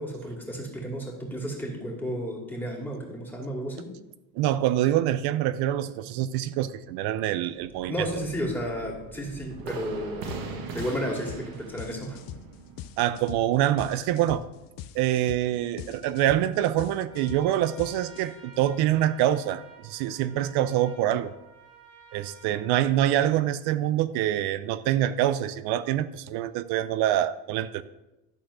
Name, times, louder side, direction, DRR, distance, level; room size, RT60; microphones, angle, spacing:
voice 1, 0.0-3.9 7.8-12.2, equal, 5° left, -1 dB, 2.3 m, -33 dB
voice 2, 4.4-8.1 13.0-14.4 14.9-21.3 22.1-27.8, right 12 dB, 85° right, 13 dB, 0.6 m, -25 dB
sound 1, 7.5-16.8 17.1-17.2 17.5-17.7, right 5 dB, 65° right, 1.5 m, -42 dB
sound 2, 10.3-10.5 10.8-18.6, left 11 dB, 60° left, 0.6 m, -42 dB
Trumpet, 17.0-23.5, right 5 dB, 35° right, 2.0 m, -52 dB
11.5 x 4.2 x 6.2 m, 0.98 s
cardioid pair, 115°, 38 cm